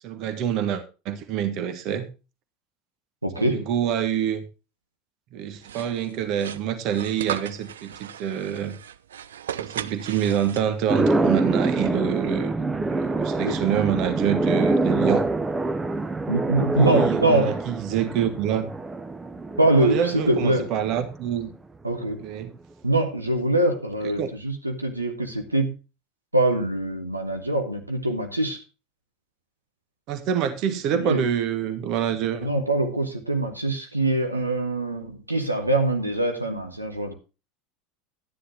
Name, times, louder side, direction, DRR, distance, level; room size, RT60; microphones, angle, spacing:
voice 1, 0.0-2.1 3.4-4.4 5.3-8.8 9.6-12.5 12.9-15.3 16.8-18.7 19.8-21.5 22.2-22.5 24.2-24.3 30.1-32.5, right 9 dB, 45° right, 10 dB, 1.3 m, -26 dB
voice 2, 3.2-3.6 13.4-13.6 16.3-17.5 19.6-20.7 21.8-22.2 22.8-25.7 26.3-28.6 30.9-31.2 32.4-37.1, right 2 dB, 85° right, 4 dB, 1.3 m, -23 dB
sound 1, 5.6-11.0, right 9 dB, 70° right, 0.4 m, -36 dB
sound 2, 10.9-21.3, right 2 dB, 15° right, 0.8 m, -25 dB
12.0 x 10.0 x 2.9 m, 0.31 s
figure-of-eight pair, 75°, 0 cm